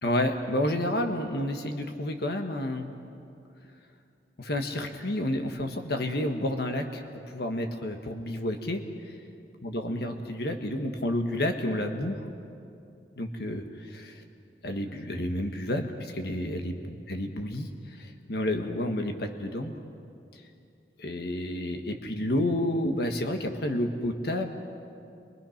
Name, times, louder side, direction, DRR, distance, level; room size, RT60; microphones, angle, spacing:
voice 1, 0.0-2.9 4.4-8.8 9.6-12.2 13.2-14.2 14.6-19.7 21.0-24.5, left 1 dB, 60° left, 5 dB, 1.5 m, -30 dB
28.5 x 23.5 x 5.9 m, 2.6 s
head